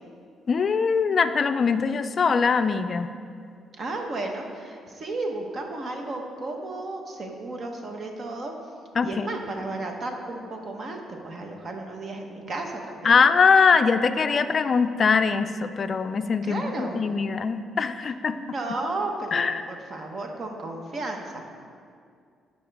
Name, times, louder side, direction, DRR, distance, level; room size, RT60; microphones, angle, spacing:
voice 1, 0.5-3.1 9.0-9.3 13.0-18.4 19.3-19.6, left 5 dB, 45° left, 10 dB, 0.3 m, -22 dB
voice 2, 3.8-8.5 9.0-13.1 16.4-17.0 18.3-21.4, right 2 dB, 50° right, 2 dB, 1.1 m, -33 dB
11.5 x 5.2 x 3.5 m, 2.3 s
cardioid pair, 90°, 0 cm